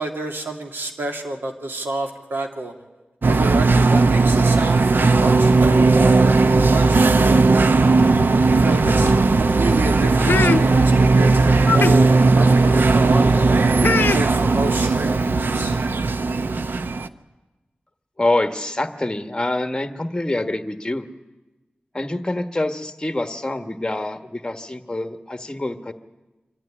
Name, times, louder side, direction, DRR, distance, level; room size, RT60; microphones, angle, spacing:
voice 1, 0.0-2.7 3.3-7.8 8.5-13.5 14.0-15.8, right 2 dB, 90° right, 2 dB, 2.4 m, -29 dB
sound 1, 3.2-17.1, right 3 dB, 70° right, 0.7 m, -16 dB
sound 2, 8.9-9.3 10.2-10.6 11.2-11.3 11.6-11.9 12.6-12.8 13.8-14.2 15.1-15.2 15.5-15.7, left 5 dB, 90° left, 0.6 m, -22 dB
voice 2, 18.2-21.1 21.9-25.9, left 2 dB, 20° left, 7 dB, 1.3 m, -25 dB
25.5 x 12.5 x 9.9 m, 1.1 s
wide cardioid pair, 80°, 4 cm